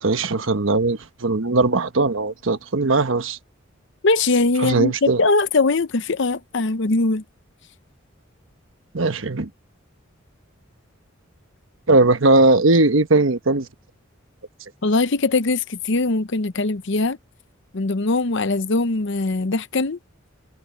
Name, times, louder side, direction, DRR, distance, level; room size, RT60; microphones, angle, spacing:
voice 1, 0.0-3.4 4.6-5.2 8.9-9.5 11.9-13.7, right 2 dB, 70° right, 1.2 m, -19 dB
voice 2, 4.0-7.2 14.8-17.2 17.7-20.0, left 3 dB, 60° left, 0.8 m, -21 dB
head